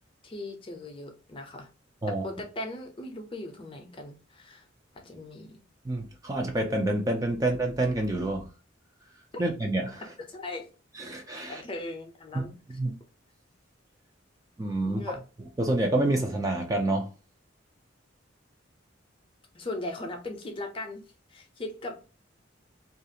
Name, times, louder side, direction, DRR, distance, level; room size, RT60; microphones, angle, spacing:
voice 1, 0.2-1.7 2.1-4.7 4.9-5.6 9.3-9.4 10.3-10.7 11.5-12.6 12.8-12.9 14.8-15.2 19.5-21.0 21.3-22.0, left 2 dB, 25° left, 0.6 m, -38 dB
voice 2, 5.8-8.5 9.4-10.1 11.0-11.6 12.3-12.5 12.8-13.0 14.6-15.0 15.4-17.1, right 2 dB, 20° right, 0.4 m, -28 dB
2.5 x 2.3 x 2.7 m
head